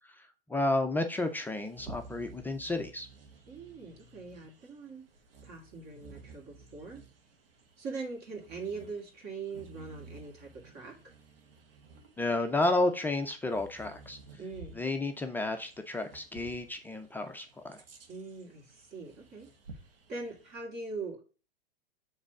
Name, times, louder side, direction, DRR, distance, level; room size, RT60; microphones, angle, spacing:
voice 1, 0.5-3.1 12.2-14.2 14.8-17.8, left 2 dB, 5° left, 5 dB, 0.4 m, -31 dB
Bird vocalization bird call bird song, 1.1-20.6, right 3 dB, 70° right, 1.7 m, -54 dB
voice 2, 3.5-5.1 5.4-7.1 7.8-11.1 14.4-14.8 18.1-19.8 20.1-21.2, right 4 dB, 35° right, 1 dB, 2.4 m, -42 dB
7.3 x 3.3 x 4.8 m, 0.35 s
hypercardioid pair, 110°, 29 cm